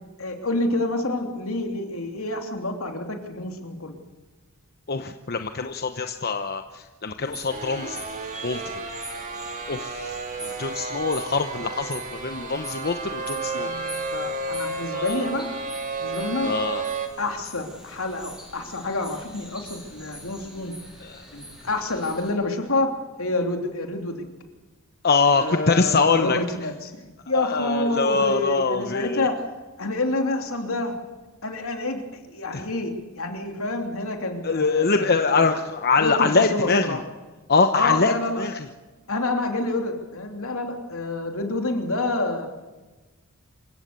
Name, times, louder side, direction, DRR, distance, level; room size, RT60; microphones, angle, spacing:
voice 1, 0.2-4.0 13.5-15.5 16.0-16.5 17.2-20.7 21.3-22.9 23.2-24.3 25.4-27.0 27.3-29.4 29.8-31.0 31.4-35.5 36.0-37.0 37.7-38.5 39.1-42.5, left 2 dB, 70° left, 4 dB, 3.1 m, -28 dB
voice 2, 4.9-8.0 8.4-8.7 9.7-10.2 10.4-13.7 14.9-15.2 16.4-16.8 21.0-21.2 25.0-26.4 27.3-29.3 32.5-32.7 34.4-37.0 37.5-38.5, left 4 dB, 45° left, 7 dB, 1.0 m, -23 dB
sound 1, 7.2-22.3, equal, 5° right, 7.3 m, -44 dB
sound 2, 7.5-17.1, right 3 dB, 35° right, 2.4 m, -32 dB
27.0 x 16.0 x 6.9 m, 1.2 s
head